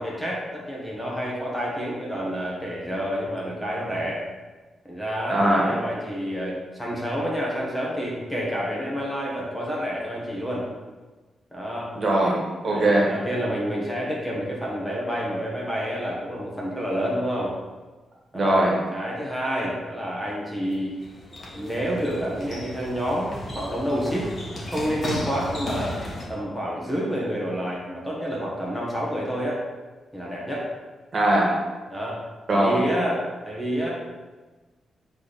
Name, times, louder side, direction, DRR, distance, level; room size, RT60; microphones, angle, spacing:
voice 1, 0.0-4.2 4.8-10.7 11.5-11.9 12.6-17.5 18.3-20.9 21.6-24.3 24.7-26.0 26.3-29.6 30.1-30.7 31.9-33.9, equal, 5° left, -5 dB, 1.4 m, -29 dB
voice 2, 5.3-5.7 11.9-13.1 18.3-18.7 31.1-31.6 32.5-32.8, right 1 dB, 40° right, -3 dB, 1.7 m, -21 dB
sound 1, 20.6-26.2, equal, 35° left, 1.6 m, -35 dB
8.0 x 3.4 x 4.2 m, 1.3 s
cardioid pair, 115°, 0 cm